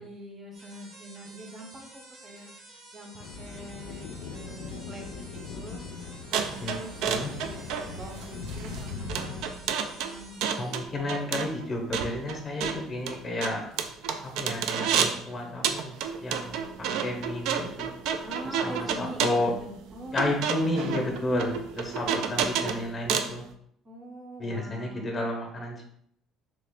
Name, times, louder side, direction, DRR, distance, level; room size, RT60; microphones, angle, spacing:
voice 1, 0.0-2.5 2.9-5.8 6.6-7.1 7.4-7.6 7.9-11.4 18.2-21.6 22.0-22.5 23.8-25.2, right 1 dB, 25° right, 2 dB, 0.6 m, -44 dB
sound 1, 0.5-10.5, right 2 dB, 90° right, 1.0 m, -50 dB
sound 2, 3.2-9.5, left 5 dB, 90° left, 0.3 m, -40 dB
sound 3, 6.3-15.2 15.6-23.4, right 7 dB, 75° right, 0.3 m, -30 dB
voice 2, 10.6-13.6 14.2-15.9 16.2-17.9 18.6-19.5 20.1-23.4 24.4-25.8, left 1 dB, 25° left, 1 dB, 0.7 m, -31 dB
3.2 x 2.4 x 3.5 m, 0.68 s
cardioid pair, 145°, 0 cm